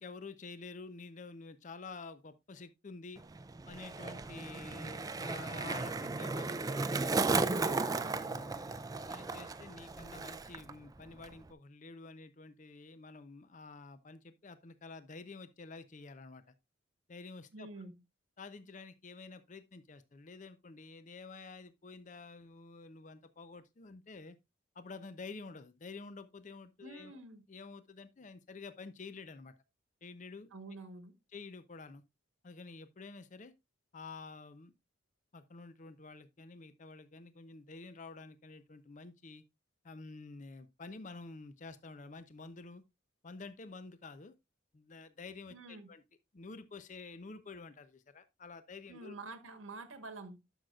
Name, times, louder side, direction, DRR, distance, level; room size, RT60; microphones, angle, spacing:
voice 1, 0.0-3.2 3.7-7.1 7.5-16.4 17.1-17.9 18.4-24.4 24.8-27.2 27.5-29.5 30.0-30.5 31.3-32.0 32.4-33.5 33.9-34.7 35.3-39.4 39.8-42.8 43.2-44.3 44.7-46.0 46.3-49.2, left 3 dB, 40° left, 0.5 m, -49 dB
Skateboard, 3.2-10.7 11.0-11.5, right 3 dB, 20° right, 0.4 m, -35 dB
voice 2, 17.5-18.0 26.8-27.4 30.5-31.1 45.5-45.9 48.9-50.4, right 3 dB, 85° right, 1.2 m, -48 dB
11.5 x 6.4 x 2.3 m
head